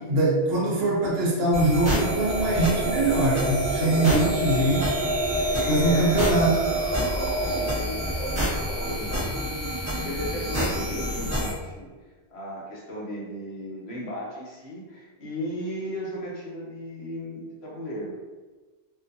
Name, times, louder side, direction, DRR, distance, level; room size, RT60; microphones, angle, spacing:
voice 1, 0.1-4.9 5.7-6.6, right 2 dB, 65° right, -4 dB, 0.9 m, -22 dB
sound 1, 1.5-11.5, equal, 15° right, 0.9 m, -29 dB
sound 2, 2.0-7.7, right 2 dB, 35° right, 1.2 m, -28 dB
voice 2, 3.8-4.2 5.4-6.2 6.9-11.9 12.3-18.1, equal, 70° left, -6 dB, 1.1 m, -36 dB
2.6 x 2.4 x 2.6 m, 1.3 s
omnidirectional pair, 1.1 m